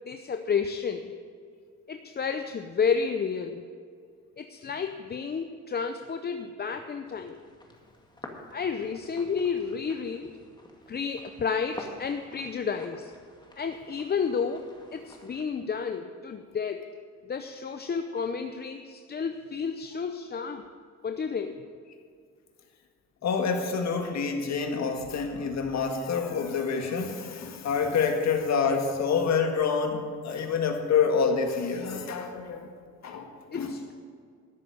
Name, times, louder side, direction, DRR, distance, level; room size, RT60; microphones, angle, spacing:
voice 1, 0.1-1.1 1.9-3.6 4.4-7.4 8.5-10.4 10.9-13.1 13.6-14.6 14.9-16.9 17.3-20.6 21.0-21.6 33.5-33.9, left 6 dB, 35° left, 7 dB, 0.7 m, -31 dB
sound 1, 7.1-15.4, left 2 dB, 15° left, 2.0 m, -49 dB
voice 2, 23.2-32.7 33.0-33.8, left 5 dB, 65° left, 4 dB, 1.8 m, -27 dB
13.0 x 6.7 x 9.3 m, 2.1 s
cardioid pair, 90°, 30 cm